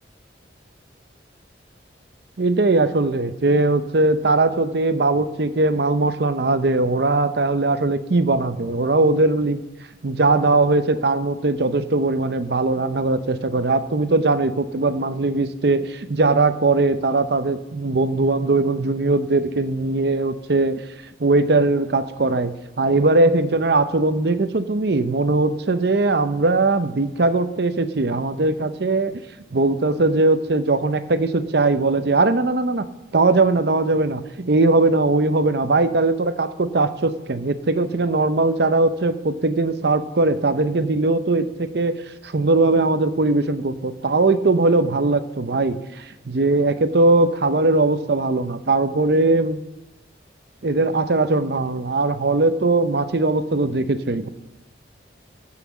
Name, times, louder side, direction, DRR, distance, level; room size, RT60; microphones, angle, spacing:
voice 1, 2.4-9.6 10.0-20.8 21.2-29.2 29.5-32.9 33.1-42.0 42.2-49.6 50.6-54.3, right 2 dB, 60° right, 11 dB, 0.7 m, -20 dB
16.0 x 5.9 x 7.3 m, 0.99 s
head